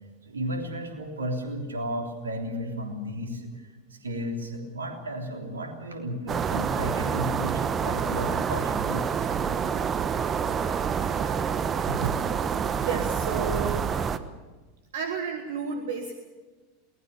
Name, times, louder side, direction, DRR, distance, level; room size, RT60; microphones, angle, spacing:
voice 1, 0.2-9.3, equal, 80° right, 3 dB, 3.4 m, -33 dB
sound 1, 6.3-14.2, right 7 dB, 30° right, 1.1 m, -27 dB
voice 2, 11.9-12.2 12.8-13.9 14.9-16.1, right 5 dB, 65° right, 6 dB, 1.7 m, -32 dB
23.0 x 19.5 x 6.8 m, 1.3 s
figure-of-eight pair, 85°, 0 cm